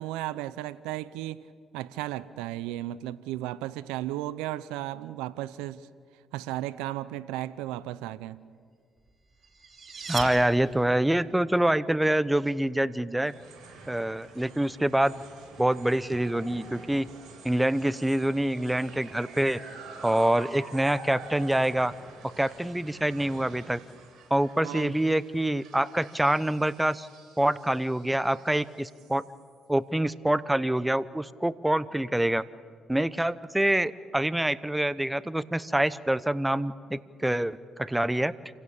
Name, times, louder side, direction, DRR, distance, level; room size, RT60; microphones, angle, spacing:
voice 1, 0.0-1.5 1.7-5.9 6.3-8.4 24.6-24.9, right 14 dB, 90° right, 17 dB, 0.6 m, -34 dB
sound 1, 9.1-11.2, right 5 dB, 40° right, 2.9 m, -38 dB
voice 2, 10.1-13.3 13.9-15.2 15.6-17.1 17.4-19.6 20.0-21.9 22.2-23.8 24.3-27.1 27.4-29.2 29.7-32.4 32.9-38.3, right 1 dB, 10° right, 17 dB, 0.8 m, -26 dB
sound 2, 13.2-29.6, right 4 dB, 65° right, 6.5 m, -48 dB
28.0 x 16.5 x 8.8 m, 2.1 s
supercardioid pair, 70°, 0 cm